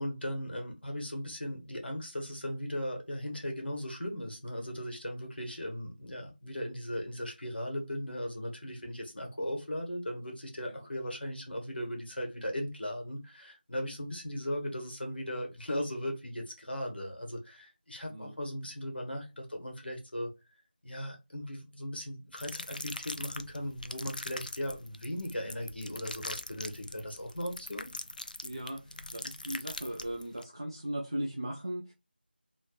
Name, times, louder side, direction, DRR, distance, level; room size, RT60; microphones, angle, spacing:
voice 1, 0.0-20.3 20.8-27.9, equal, 70° left, 1.4 m, -37 dB
sound 1, 22.4-30.4, left 2 dB, 50° left, 0.4 m, -42 dB
voice 2, 28.4-31.9, right 1 dB, 30° right, 0.4 m, -38 dB
3.3 x 3.0 x 2.4 m
figure-of-eight pair, 170°, 6 cm